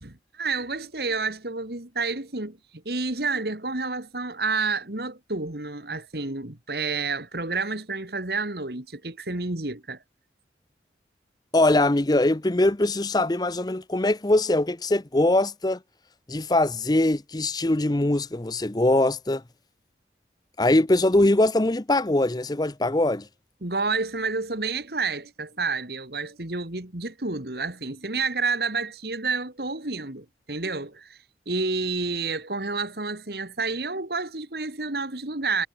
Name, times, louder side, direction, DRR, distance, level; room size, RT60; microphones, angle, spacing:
voice 1, 0.0-10.0 23.6-31.2 31.5-35.7, right 3 dB, 60° right, 2.3 m, -29 dB
voice 2, 11.5-15.8 16.3-19.4 20.6-23.3, left 1 dB, 20° left, 0.7 m, -22 dB
head